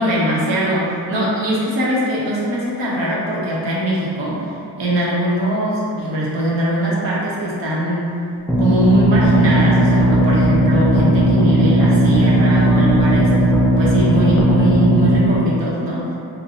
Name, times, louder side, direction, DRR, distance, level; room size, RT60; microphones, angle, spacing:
voice 1, 0.0-8.1 8.6-13.3 13.8-16.1, equal, 80° right, -6 dB, 0.8 m, -21 dB
sound 1, 8.5-15.2, right 1 dB, 5° left, 0.4 m, -15 dB
2.9 x 2.2 x 2.6 m, 2.6 s
cardioid pair, 60°, 44 cm